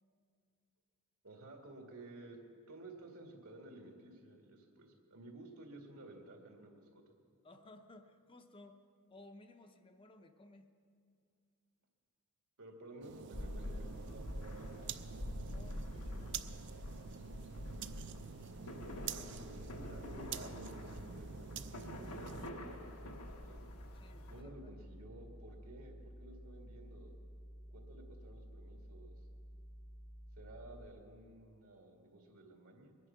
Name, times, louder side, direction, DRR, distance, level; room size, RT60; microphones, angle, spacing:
voice 1, 1.2-2.4 2.7-7.0 12.6-15.0 19.1-19.2 19.6-21.4 21.8-23.6 24.3-27.2 27.7-29.3 30.4-33.0, right 2 dB, 80° right, 2 dB, 2.1 m, -54 dB
voice 2, 7.4-8.8 9.1-10.7 14.6-14.9 15.4-16.7 19.2-19.4 23.9-24.7, left 2 dB, 25° left, 6 dB, 0.6 m, -59 dB
sound 1, 13.0-22.5, right 7 dB, 55° right, 0.4 m, -47 dB
sound 2, 13.3-24.4, left 1 dB, 90° left, 1.4 m, -47 dB
sound 3, 19.4-30.9, equal, 55° left, 0.9 m, -53 dB
22.0 x 9.9 x 5.8 m, 2.3 s
head